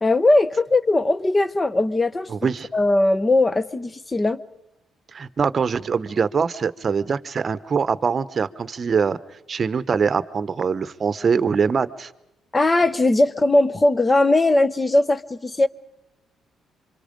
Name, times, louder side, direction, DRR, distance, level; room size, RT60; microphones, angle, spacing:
voice 1, 0.0-2.3 2.7-4.4 12.5-15.7, left 2 dB, 20° left, 16 dB, 1.0 m, -19 dB
voice 2, 2.3-2.7 5.1-9.2 9.5-12.1, right 6 dB, 40° right, 16 dB, 0.9 m, -23 dB
27.0 x 25.0 x 5.2 m, 0.87 s
cardioid pair, 90°, 0 cm